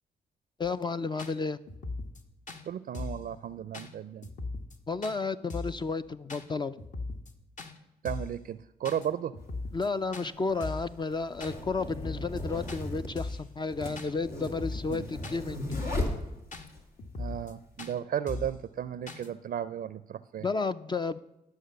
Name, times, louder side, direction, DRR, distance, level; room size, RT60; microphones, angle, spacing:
sound 1, 0.6-0.7 1.2-1.3 1.7-2.2 2.5-2.6 2.9-3.3 3.7-3.9 4.2-4.8 5.0-5.2 5.5-5.8 6.3-6.4 6.8-7.3 7.6-7.7 8.1-8.4 8.8-9.1 9.3-9.9 10.1-10.3 10.6-10.9 11.4-11.6 11.9-12.4 12.7-12.8 13.2-13.5 14.0-14.1 14.4-15.0 15.2-15.4 15.7-16.0 16.5-16.7 17.0-17.5 17.8-17.9 18.3-18.6 19.1-19.3, left 3 dB, 50° left, 1.3 m, -38 dB
voice 1, 0.6-1.6 4.9-6.8 9.7-15.7 20.4-21.2, left 4 dB, 30° left, 11 dB, 0.4 m, -32 dB
voice 2, 2.7-4.3 8.0-9.3 14.9-15.1 17.2-20.5, right 9 dB, 65° right, 15 dB, 0.5 m, -34 dB
sound 2, 9.4-9.5 10.4-16.8, left 1 dB, 75° left, 2.3 m, -37 dB
11.5 x 6.5 x 6.6 m, 0.91 s
supercardioid pair, 55°, 16 cm